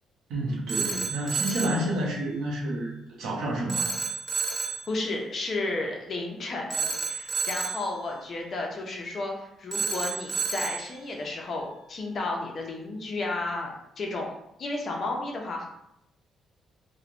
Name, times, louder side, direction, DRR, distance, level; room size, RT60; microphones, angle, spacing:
voice 1, 0.3-2.9 3.2-3.9, right 1 dB, 90° right, -3 dB, 0.8 m, -29 dB
Telephone, 0.7-1.8 3.7-4.9 6.7-7.9 9.7-10.9, right 5 dB, 20° right, 0.4 m, -30 dB
voice 2, 4.8-15.7, left 2 dB, 40° left, 0 dB, 0.6 m, -33 dB
3.0 x 2.1 x 2.5 m, 0.78 s
cardioid pair, 135°, 0 cm